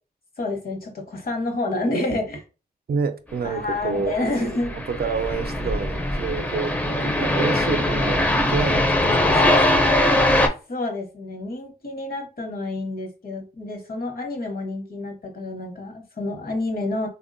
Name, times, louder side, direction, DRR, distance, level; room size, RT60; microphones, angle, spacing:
voice 1, 0.4-2.4 3.4-4.7 10.7-17.1, left 2 dB, 65° left, 4 dB, 0.9 m, -28 dB
voice 2, 2.9-4.2 4.6-9.9, right 5 dB, 70° right, 9 dB, 0.4 m, -29 dB
sound 1, 3.8-10.5, left 1 dB, 10° left, 0.4 m, -21 dB
3.4 x 2.1 x 2.5 m, 0.33 s
wide cardioid pair, 115°, 16 cm